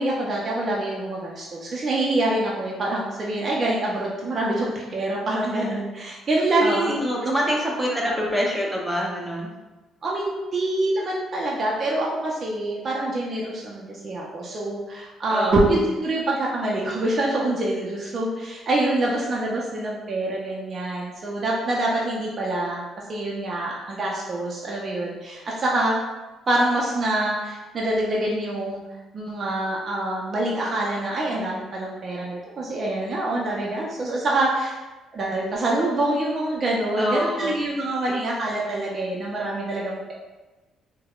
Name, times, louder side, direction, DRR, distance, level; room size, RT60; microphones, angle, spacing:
voice 1, 0.0-7.0 7.4-7.6 8.0-8.2 10.0-22.8 23.1-26.0 26.5-28.8 29.1-34.8 35.1-40.1, right 1 dB, 45° right, -4 dB, 0.5 m, -25 dB
voice 2, 6.6-9.5 15.3-15.6 37.0-37.6, equal, 10° right, -2 dB, 0.7 m, -25 dB
3.3 x 2.1 x 2.3 m, 1.2 s
supercardioid pair, 75°, 0 cm